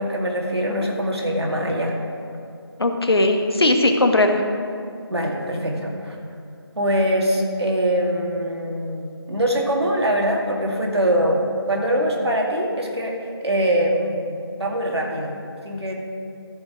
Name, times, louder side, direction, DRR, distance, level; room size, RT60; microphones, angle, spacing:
voice 1, 0.0-1.9 5.1-6.2 6.8-11.4 11.7-15.3 15.6-15.9, equal, 80° right, -1 dB, 2.1 m, -23 dB
voice 2, 2.8-4.4, left 2 dB, 70° left, 4 dB, 1.1 m, -18 dB
14.0 x 5.2 x 4.9 m, 2.4 s
figure-of-eight pair, 175°, 14 cm